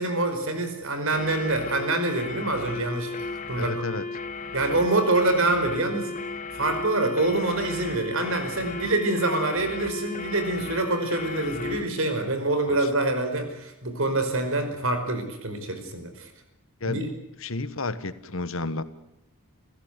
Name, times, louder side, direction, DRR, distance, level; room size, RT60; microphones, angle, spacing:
voice 1, 0.0-3.8 4.5-6.1 6.5-16.3 16.9-17.1, right 2 dB, 65° right, 7 dB, 5.0 m, -26 dB
sound 1, 1.1-11.9, left 3 dB, 35° left, 1.7 m, -35 dB
voice 2, 3.5-4.0 12.7-13.0 16.8-17.0 17.4-18.8, left 3 dB, 65° left, 13 dB, 1.4 m, -31 dB
28.0 x 15.5 x 8.2 m, 0.86 s
head